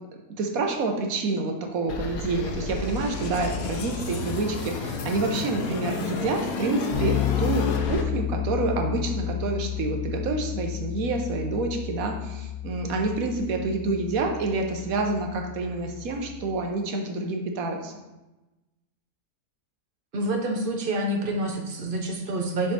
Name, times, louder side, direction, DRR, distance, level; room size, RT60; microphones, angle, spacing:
voice 1, 0.4-17.9, right 3 dB, 70° right, 3 dB, 1.2 m, -28 dB
sound 1, 1.9-8.0, left 4 dB, 75° left, 1.2 m, -31 dB
Bass guitar, 6.9-16.6, left 11 dB, 45° left, 1.3 m, -31 dB
voice 2, 20.1-22.7, right 1 dB, 45° right, 1 dB, 0.9 m, -27 dB
6.9 x 3.7 x 4.1 m, 1.0 s
omnidirectional pair, 1.6 m